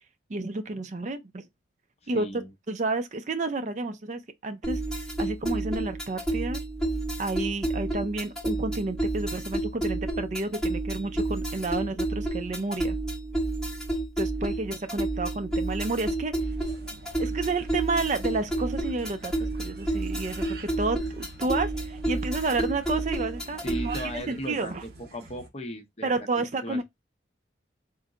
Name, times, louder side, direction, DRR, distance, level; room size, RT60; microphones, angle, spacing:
voice 1, 0.3-1.5 2.1-2.3 2.7-4.8 5.2-6.6 7.2-13.0 14.2-16.3 17.2-24.8 26.0-26.8, right 3 dB, 40° right, 0.4 m, -30 dB
voice 2, 2.0-2.5 23.6-26.1 26.4-26.8, equal, 35° left, 0.7 m, -37 dB
sound 1, 4.6-24.2, right 2 dB, 5° left, 1.0 m, -30 dB
sound 2, 16.4-25.5, right 2 dB, 55° right, 0.9 m, -48 dB
3.9 x 2.1 x 3.6 m
head